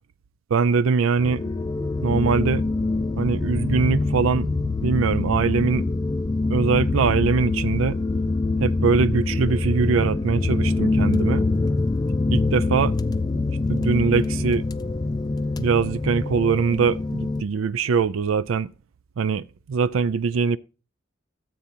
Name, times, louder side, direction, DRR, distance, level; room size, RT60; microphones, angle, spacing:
voice 1, 0.5-1.4 2.0-2.6 3.2-4.5 4.8-5.9 6.5-8.0 8.6-11.5 12.3-12.9 13.7-14.7 15.6-18.7 19.2-20.6, right 5 dB, 90° right, 0.4 m, -22 dB
sound 1, 1.2-17.4, left 3 dB, 20° left, 0.4 m, -24 dB
13.5 x 7.7 x 2.9 m
head